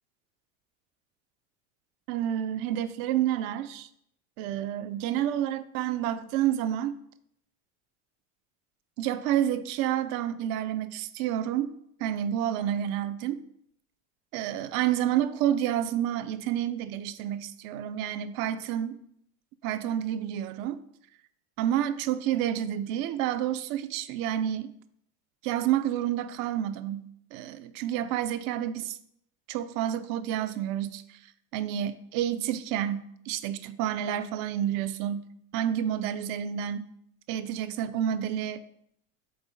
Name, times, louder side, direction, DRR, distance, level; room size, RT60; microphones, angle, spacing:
voice 1, 2.1-3.9 4.4-7.0 9.0-11.7 12.0-13.4 14.3-19.0 19.6-20.8 21.6-24.7 25.4-29.0 29.5-31.0 31.5-35.3 35.5-36.9 37.3-38.6, right 11 dB, 55° right, 0.6 m, -29 dB
7.8 x 4.0 x 4.0 m
hypercardioid pair, 95°, 40 cm